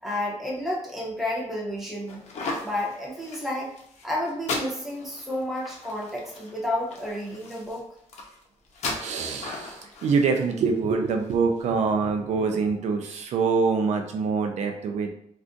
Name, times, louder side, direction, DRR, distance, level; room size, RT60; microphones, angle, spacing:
voice 1, 0.0-2.2 2.6-3.7 4.0-7.8, left 1 dB, ahead, -4 dB, 0.7 m, -31 dB
sound 1, 2.1-11.6, left 3 dB, 65° left, 0.6 m, -37 dB
voice 2, 9.0-15.1, right 5 dB, 70° right, 4 dB, 0.4 m, -25 dB
2.5 x 2.3 x 3.7 m, 0.70 s
wide cardioid pair, 170°, 12 cm